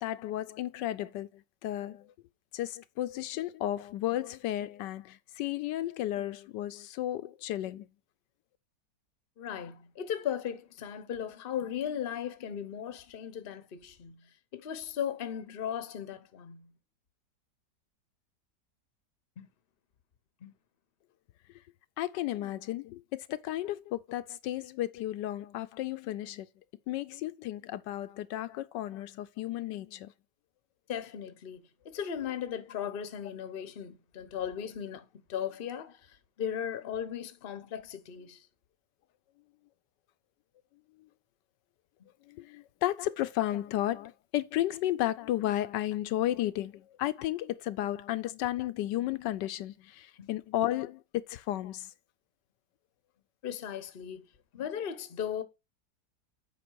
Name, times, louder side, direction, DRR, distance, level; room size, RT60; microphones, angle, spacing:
voice 1, 0.0-2.1 2.5-7.9 22.0-26.5 26.9-30.1 41.0-41.1 42.2-51.9, left 14 dB, 80° left, 1.2 m, -33 dB
voice 2, 9.4-14.3 14.5-16.7 19.4-19.5 20.4-20.5 30.9-38.5 50.2-50.3 53.4-54.2 54.5-55.4, left 9 dB, 40° left, 0.9 m, -37 dB
8.6 x 5.3 x 4.6 m
omnidirectional pair, 1.9 m